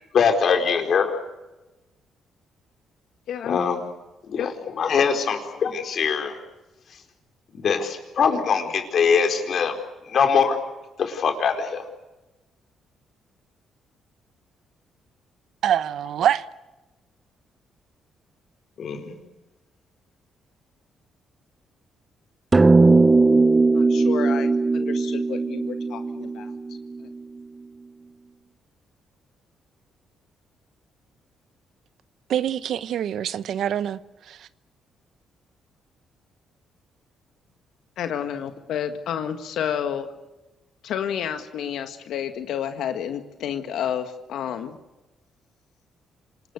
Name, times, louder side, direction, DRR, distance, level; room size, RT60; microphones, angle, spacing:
voice 1, 0.1-1.1 3.4-3.8 4.3-4.5 4.8-6.4 7.5-9.7 10.1-10.6 11.0-11.8 18.8-19.1, left 6 dB, 60° left, 4.4 m, -22 dB
voice 2, 3.3-3.6 4.4-4.5 23.7-26.5 27.0-27.1 38.0-40.1 40.8-44.8, left 9 dB, 75° left, 1.7 m, -30 dB
voice 3, 15.6-16.4 32.3-34.0 34.3-34.4, right 10 dB, 70° right, 1.0 m, -24 dB
sound 1, 22.5-27.2, right 3 dB, 20° right, 0.9 m, -19 dB
27.0 x 19.0 x 8.2 m
cardioid pair, 90°, 0 cm